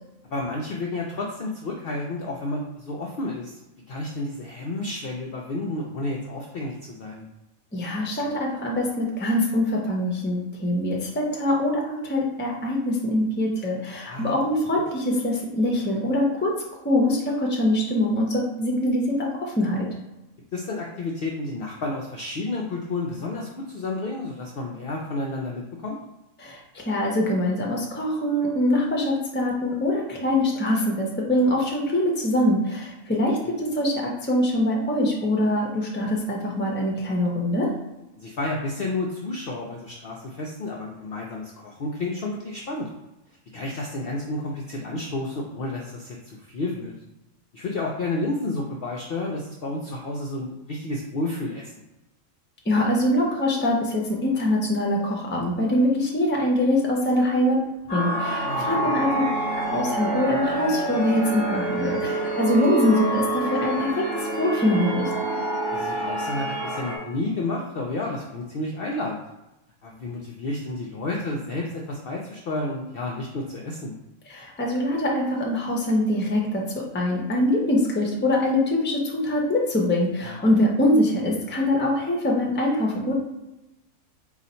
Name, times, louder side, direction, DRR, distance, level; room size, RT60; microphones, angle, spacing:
voice 1, 0.2-3.6 3.9-7.3 14.1-14.4 20.5-26.0 38.2-42.9 43.5-47.0 47.5-51.7 58.4-59.1 65.7-69.2 69.8-73.9 80.2-80.5, left 2 dB, 65° left, -1 dB, 0.6 m, -31 dB
voice 2, 7.7-16.6 16.8-19.9 26.4-37.7 52.7-57.7 57.9-59.2 59.7-65.1 74.3-83.1, left 1 dB, 15° left, -1 dB, 0.5 m, -23 dB
sound 1, 57.9-67.0, right 2 dB, 15° right, 1.5 m, -27 dB
3.9 x 2.4 x 4.2 m, 0.96 s
omnidirectional pair, 1.5 m